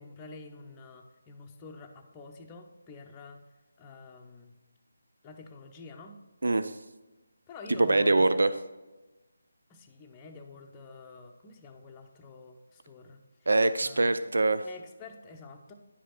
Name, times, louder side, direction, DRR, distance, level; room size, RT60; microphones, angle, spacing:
voice 1, 0.0-3.4 3.8-4.5 5.2-6.2 7.5-8.4 9.7-13.2 13.8-14.2 14.6-15.7, left 3 dB, 15° left, 2 dB, 0.7 m, -47 dB
voice 2, 6.4-6.7 7.7-8.5 13.5-14.6, right 2 dB, 75° right, 12 dB, 0.4 m, -23 dB
10.0 x 5.0 x 4.4 m, 1.1 s
figure-of-eight pair, 160°, 0 cm